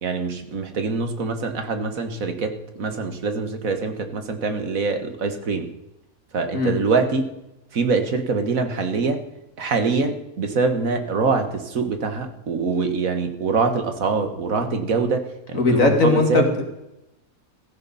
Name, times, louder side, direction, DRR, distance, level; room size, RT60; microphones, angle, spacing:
voice 1, 0.0-5.7 6.3-7.3 7.7-9.2 9.6-15.2 15.5-16.5, right 4 dB, 65° right, 7 dB, 1.8 m, -24 dB
voice 2, 15.5-16.6, left 3 dB, 65° left, 3 dB, 2.7 m, -19 dB
16.0 x 14.5 x 4.1 m, 0.90 s
omnidirectional pair, 1.5 m